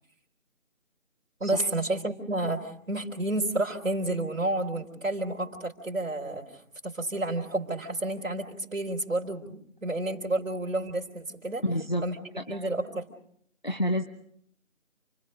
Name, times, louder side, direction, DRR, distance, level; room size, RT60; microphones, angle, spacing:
voice 1, 1.4-11.6 12.0-12.2 12.5-13.1, right 2 dB, 70° right, -3 dB, 3.6 m, -30 dB
voice 2, 11.6-12.1 12.4-12.7 13.6-14.0, equal, 35° left, 6 dB, 0.9 m, -29 dB
29.0 x 23.0 x 5.3 m, 0.69 s
figure-of-eight pair, 180°, 40 cm